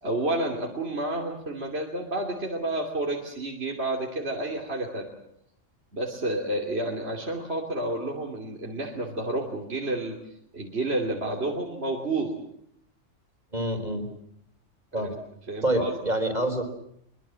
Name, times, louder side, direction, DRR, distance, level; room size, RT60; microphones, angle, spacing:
voice 1, 0.0-5.1 5.9-10.1 10.5-12.3 14.9-15.1 15.5-15.9, right 1 dB, 55° right, 0 dB, 3.2 m, -30 dB
voice 2, 13.5-14.1 14.9-15.2 15.6-16.6, right 1 dB, 35° right, 6 dB, 4.2 m, -26 dB
24.5 x 23.0 x 7.6 m, 0.73 s
omnidirectional pair, 1.3 m